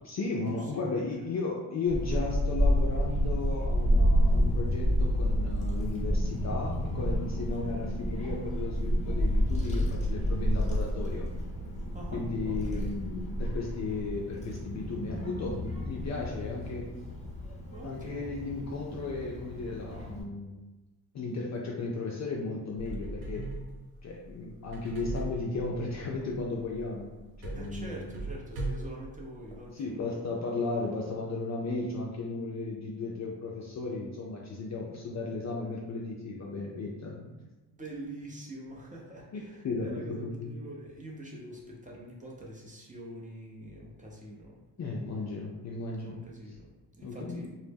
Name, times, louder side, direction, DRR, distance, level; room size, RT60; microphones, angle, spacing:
voice 1, 0.0-11.3 12.1-16.9 17.8-20.5 21.1-23.5 24.0-27.1 27.4-28.0 29.7-37.3 39.3-40.6 44.8-46.6 47.0-47.5, left 3 dB, 35° left, -2 dB, 0.4 m, -35 dB
Child speech kid speaking / Wind, 1.9-20.2, equal, 15° left, 0.9 m, -29 dB
voice 2, 7.3-7.8 11.9-12.9 17.7-18.3 27.5-30.0 37.4-37.5 37.7-44.6 46.0-47.5, right 1 dB, 15° right, -3 dB, 0.6 m, -45 dB
sound 1, 22.7-29.7, right 2 dB, 80° right, 0.6 m, -40 dB
2.1 x 2.0 x 3.3 m, 1.1 s
supercardioid pair, 55°, 49 cm